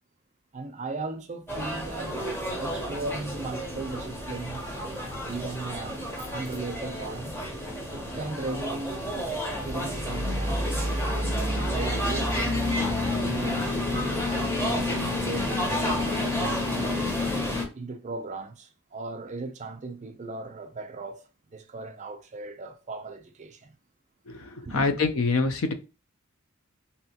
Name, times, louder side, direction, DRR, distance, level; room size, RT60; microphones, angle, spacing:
voice 1, 0.5-2.2 2.6-6.0 6.3-7.4 7.9-9.2 9.6-11.3 11.7-12.8 13.2-17.3 17.7-23.7 24.6-24.9, right 3 dB, 35° right, 0.5 m, -37 dB
sound 1, 1.5-17.6, left 1 dB, 10° left, 0.7 m, -29 dB
voice 2, 24.3-25.7, left 4 dB, 70° left, 0.5 m, -26 dB
2.9 x 2.8 x 2.8 m
head